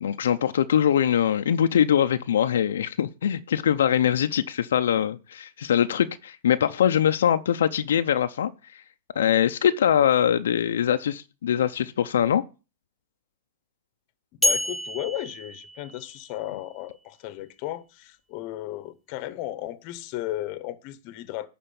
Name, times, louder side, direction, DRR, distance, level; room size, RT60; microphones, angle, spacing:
voice 1, 0.0-8.5 9.2-12.4, left 9 dB, 85° left, 0.6 m, -22 dB
voice 2, 14.3-21.5, left 14 dB, 45° left, 1.0 m, -35 dB
sound 1, 14.4-16.5, left 2 dB, 5° left, 0.7 m, -28 dB
11.5 x 4.3 x 7.0 m
hypercardioid pair, 140°, 0 cm